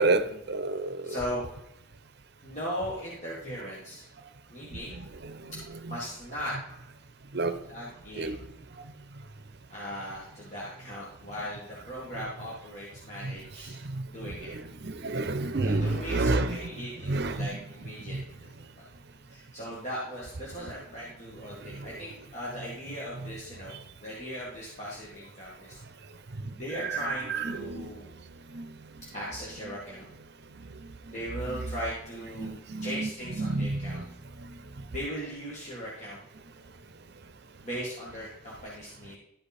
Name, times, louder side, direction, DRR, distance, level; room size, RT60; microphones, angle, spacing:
voice 1, 0.0-1.2 4.7-5.5 5.9-6.0 7.3-7.6 8.2-8.4 13.2-13.4 13.7-17.6 18.1-18.2 21.6-21.9 26.4-26.5 26.9-27.9 28.5-28.7 30.5-31.1 31.5-31.7 32.4-33.1 33.4-34.1 34.4-34.6, right 3 dB, 55° right, 10 dB, 0.7 m, -31 dB
voice 2, 1.0-1.4 2.4-4.1 4.5-5.0 5.9-6.5 7.7-8.4 9.7-13.8 14.1-14.5 15.6-18.9 19.3-25.8 26.6-28.1 29.1-30.1 31.1-32.6 32.8-34.0 34.9-36.2 37.6-39.2, equal, 35° left, -6 dB, 1.9 m, -38 dB
12.0 x 5.1 x 4.3 m, 0.81 s
head